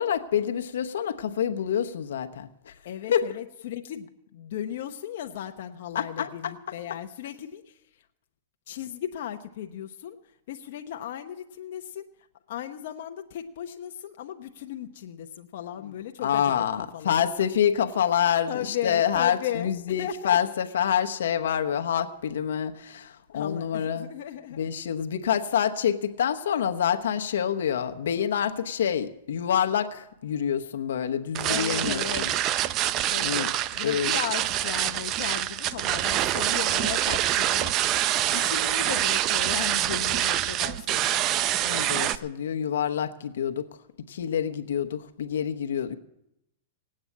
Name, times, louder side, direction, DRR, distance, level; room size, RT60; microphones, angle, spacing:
voice 1, 0.0-2.7 3.1-3.3 5.9-6.5 15.8-15.9 16.2-24.1 24.5-32.3 33.2-33.5 33.8-34.1 41.6-43.7 44.1-46.0, left 9 dB, 80° left, 7 dB, 1.1 m, -27 dB
voice 2, 2.8-7.8 8.7-10.2 10.5-12.1 12.5-17.2 18.5-19.7 20.0-20.4 23.3-24.6 31.5-32.3 33.1-37.7 38.3-41.2, left 10 dB, 65° left, 4 dB, 0.9 m, -36 dB
sound 1, 30.1-36.9, right 4 dB, 55° right, 8.0 m, -53 dB
sound 2, 31.3-42.1, right 12 dB, 35° right, 0.6 m, -26 dB
18.5 x 8.8 x 8.6 m, 0.85 s
hypercardioid pair, 140°, 0 cm